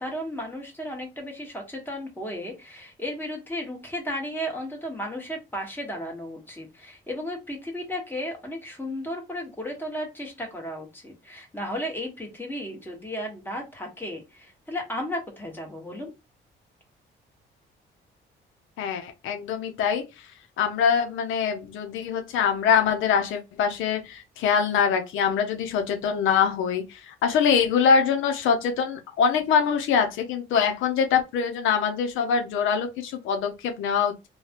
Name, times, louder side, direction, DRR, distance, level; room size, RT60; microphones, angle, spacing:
voice 1, 0.0-16.1, equal, 10° left, 1.3 m, -34 dB
voice 2, 18.8-20.0 20.6-34.3, left 6 dB, 85° left, 0.6 m, -24 dB
3.2 x 2.2 x 2.9 m
cardioid pair, 95°, 20 cm